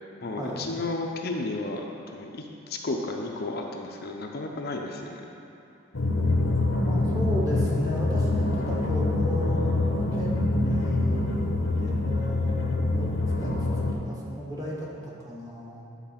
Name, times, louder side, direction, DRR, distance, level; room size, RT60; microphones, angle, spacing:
voice 1, 0.2-5.2, left 2 dB, 50° left, 1 dB, 0.6 m, -33 dB
sound 1, 5.9-13.9, left 2 dB, 85° left, 1.0 m, -25 dB
voice 2, 6.8-11.2 11.7-13.1 13.4-13.5 13.9-15.9, equal, 20° right, -5 dB, 1.4 m, -34 dB
10.0 x 4.0 x 5.7 m, 2.8 s
head